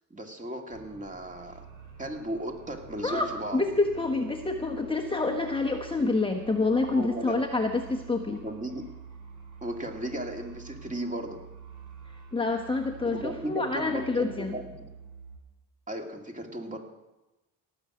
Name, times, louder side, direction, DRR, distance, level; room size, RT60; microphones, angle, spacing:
voice 1, 0.1-1.6 2.0-3.6 6.9-7.4 8.3-8.9 9.6-11.4 13.1-14.9 15.9-16.8, right 1 dB, 20° right, 2 dB, 2.3 m, -36 dB
sound 1, 0.7-15.4, right 6 dB, 50° right, 5.4 m, -47 dB
voice 2, 3.5-8.4 12.3-14.5, left 3 dB, 15° left, 1 dB, 1.1 m, -27 dB
17.5 x 6.5 x 7.8 m, 1.0 s
cardioid pair, 90°, 41 cm